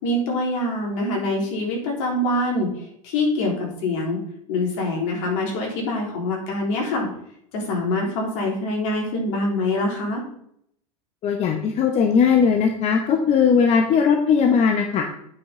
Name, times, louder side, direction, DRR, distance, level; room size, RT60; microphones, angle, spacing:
voice 1, 0.0-4.2 4.5-7.1 7.5-10.3, left 1 dB, 65° left, 0 dB, 3.6 m, -25 dB
voice 2, 11.2-15.0, left 6 dB, 40° left, 4 dB, 1.1 m, -18 dB
8.5 x 5.3 x 5.0 m, 0.69 s
supercardioid pair, 115°, 18 cm